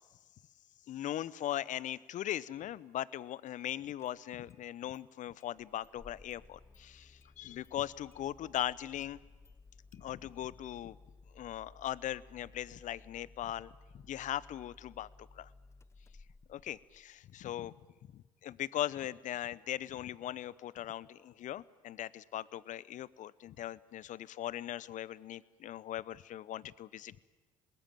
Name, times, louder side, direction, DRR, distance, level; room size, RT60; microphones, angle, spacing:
voice 1, 0.9-9.2 9.9-11.0 11.3-15.5 16.5-17.7 18.1-27.2, left 12 dB, 50° left, 21 dB, 0.8 m, -39 dB
Engine starting, 3.5-3.6 4.0-4.6 4.9-5.0 5.4-17.3, left 3 dB, 15° left, 0.8 m, -59 dB
26.0 x 20.0 x 9.0 m, 1.2 s
hypercardioid pair, 65°, 16 cm